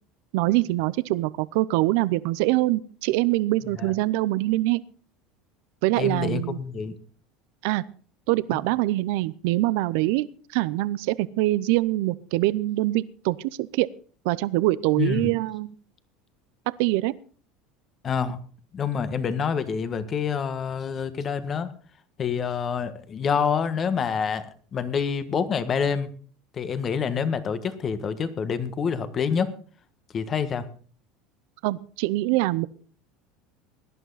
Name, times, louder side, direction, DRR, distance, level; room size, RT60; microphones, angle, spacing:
voice 1, 0.3-4.8 5.8-6.6 7.6-7.8 8.3-13.9 14.2-15.7 16.8-17.1 31.6-32.7, right 18 dB, 75° right, 18 dB, 0.6 m, -24 dB
voice 2, 6.0-6.9 15.0-15.3 18.0-18.4 18.7-21.7 22.2-26.1 26.6-29.5 30.1-30.7, left 6 dB, 35° left, 12 dB, 1.5 m, -27 dB
18.0 x 11.0 x 4.1 m, 0.43 s
supercardioid pair, 120°, 0 cm